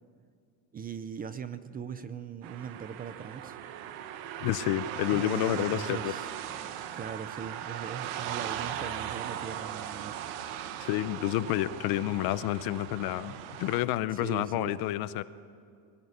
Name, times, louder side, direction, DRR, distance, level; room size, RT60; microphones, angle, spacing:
voice 1, 0.7-3.6 5.1-6.3 6.9-10.2 14.1-14.8, right 7 dB, 20° right, 13 dB, 0.5 m, -40 dB
sound 1, 2.4-13.8, right 10 dB, 70° right, 1.6 m, -38 dB
voice 2, 4.4-6.1 10.8-13.3 13.6-15.2, left 15 dB, 55° left, 15 dB, 0.8 m, -29 dB
22.0 x 17.5 x 9.8 m, 2.3 s
cardioid pair, 150°, 44 cm